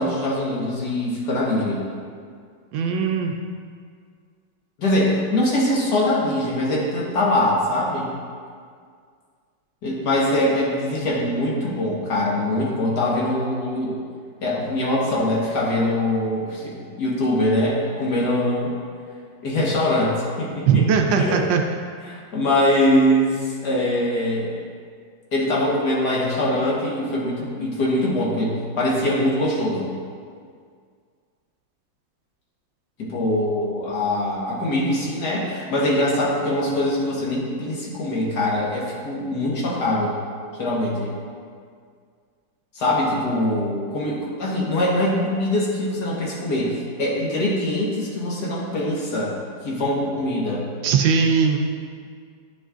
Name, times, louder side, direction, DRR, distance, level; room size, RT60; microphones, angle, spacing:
voice 1, 0.0-1.9 4.8-8.1 9.8-14.0 14.4-18.7 19.4-20.9 21.2-21.4 22.0-24.5 25.3-29.9 33.0-40.2 40.6-41.1 42.7-49.3 49.6-50.6, left 1 dB, 60° left, -4 dB, 1.7 m, -23 dB
voice 2, 2.7-3.3 20.7-21.6 50.8-51.6, right 6 dB, 75° right, 3 dB, 1.2 m, -19 dB
10.5 x 6.3 x 2.5 m, 2.1 s
omnidirectional pair, 2.2 m